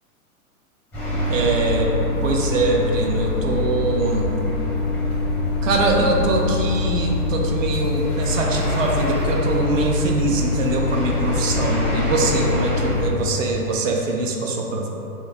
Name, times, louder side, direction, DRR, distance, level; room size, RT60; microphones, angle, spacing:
sound 1, 0.9-13.1, left 3 dB, 5° left, 0.4 m, -23 dB
voice 1, 1.3-1.9 2.2-4.3 5.6-14.9, right 3 dB, 60° right, 0 dB, 0.6 m, -23 dB
2.9 x 2.5 x 4.1 m, 2.9 s
figure-of-eight pair, 110°, 45 cm